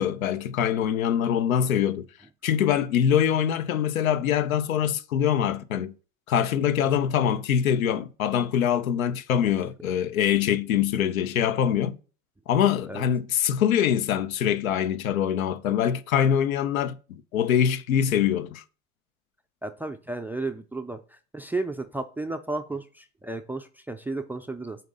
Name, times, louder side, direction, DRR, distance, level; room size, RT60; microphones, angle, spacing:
voice 1, 0.0-2.1 2.4-5.9 6.3-12.0 12.5-18.6, left 9 dB, 85° left, 0.7 m, -24 dB
voice 2, 19.6-21.0 21.3-24.8, right 2 dB, 5° right, 0.3 m, -33 dB
7.6 x 2.7 x 5.3 m
hypercardioid pair, 100°, 40 cm